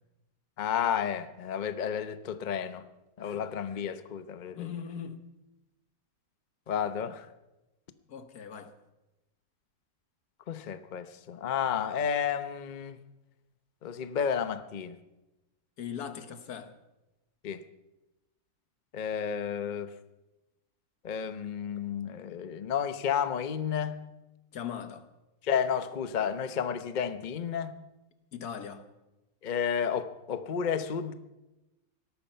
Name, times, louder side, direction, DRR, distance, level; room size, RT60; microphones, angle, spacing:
voice 1, 0.6-2.8 3.2-4.6 6.7-7.3 10.5-13.0 13.8-15.0 17.4-17.6 18.9-19.9 21.0-24.0 25.4-27.8 29.4-31.1, left 7 dB, 40° left, 0.7 m, -31 dB
voice 2, 4.5-5.2 7.0-7.1 8.1-8.7 15.8-16.7 24.5-25.1 28.3-28.9, left 8 dB, 80° left, 1.7 m, -40 dB
18.0 x 13.0 x 5.6 m
omnidirectional pair, 1.6 m